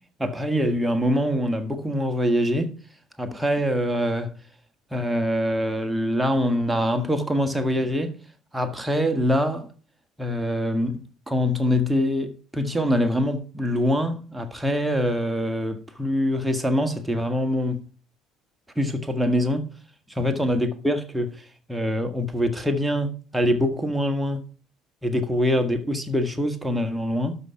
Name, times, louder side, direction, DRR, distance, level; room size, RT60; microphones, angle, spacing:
voice 1, 0.2-2.7 3.2-4.3 4.9-8.2 8.5-9.7 10.2-17.8 18.8-19.7 20.1-24.4 25.0-27.4, equal, 5° right, 1.7 m, -24 dB
12.0 x 5.7 x 5.0 m
figure-of-eight pair, 60°, 0 cm